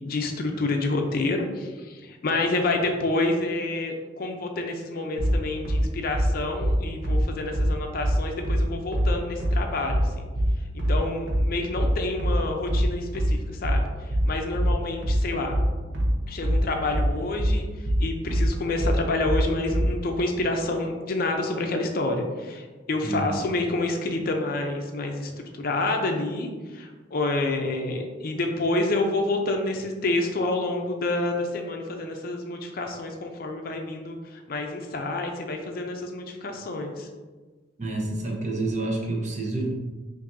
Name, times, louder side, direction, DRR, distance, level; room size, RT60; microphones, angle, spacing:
voice 1, 0.0-10.3 10.9-13.8 14.3-15.6 16.3-17.6 18.0-37.1, left 2 dB, 50° left, 3 dB, 0.5 m, -28 dB
sound 1, 5.2-20.0, equal, 70° right, 0.7 m, -23 dB
voice 2, 23.0-23.4 37.8-39.7, right 2 dB, 40° right, -1 dB, 0.8 m, -28 dB
5.5 x 2.6 x 2.6 m, 1.3 s
head